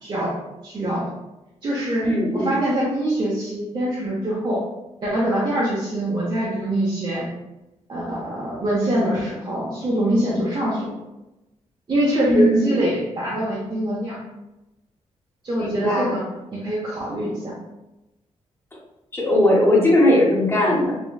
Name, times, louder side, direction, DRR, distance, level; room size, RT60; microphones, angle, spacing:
voice 1, 0.0-0.4 0.6-1.1 1.6-2.0 2.3-4.7 5.0-7.3 7.9-11.0 11.9-14.2 15.4-16.2 16.5-17.5, right 1 dB, 40° right, -7 dB, 0.7 m, -24 dB
voice 2, 2.0-2.6 12.3-12.8 15.6-16.1 19.1-21.0, left 1 dB, 20° left, -4 dB, 1.0 m, -19 dB
3.2 x 2.2 x 2.2 m, 0.98 s
cardioid pair, 80°, 12 cm